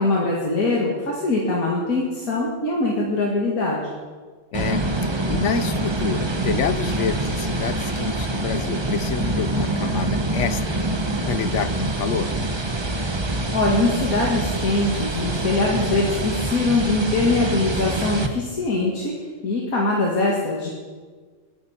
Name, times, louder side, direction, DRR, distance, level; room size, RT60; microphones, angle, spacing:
voice 1, 0.0-3.9 13.5-19.1 19.4-20.7, left 2 dB, 90° left, -4 dB, 2.5 m, -22 dB
voice 2, 4.5-4.8 5.3-12.3, left 7 dB, 65° left, 12 dB, 1.0 m, -28 dB
sound 1, 4.5-18.3, right 2 dB, 20° right, 0.9 m, -25 dB
22.5 x 10.5 x 4.4 m, 1.5 s
omnidirectional pair, 1.5 m